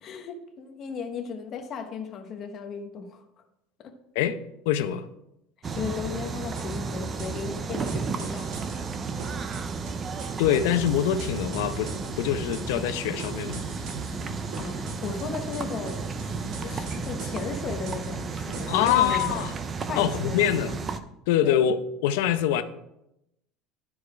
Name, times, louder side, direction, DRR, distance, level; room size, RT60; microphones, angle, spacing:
voice 1, 0.0-3.3 3.8-4.0 5.7-8.7 14.6-16.0 16.4-19.5 19.9-20.8 21.4-21.6, left 6 dB, 30° left, 0.9 m, -36 dB
voice 2, 4.7-5.1 10.4-13.6 18.7-19.5 20.0-20.7 21.3-22.6, left 10 dB, 85° left, 0.6 m, -24 dB
sound 1, 5.6-21.0, right 5 dB, 20° right, 0.5 m, -33 dB
sound 2, 6.5-19.6, right 4 dB, 50° right, 1.5 m, -44 dB
sound 3, 11.5-13.0 13.4-15.2 15.7-17.4 18.0-19.6, left 3 dB, 45° left, 1.6 m, -44 dB
12.0 x 4.8 x 4.8 m
cardioid pair, 175°, 0 cm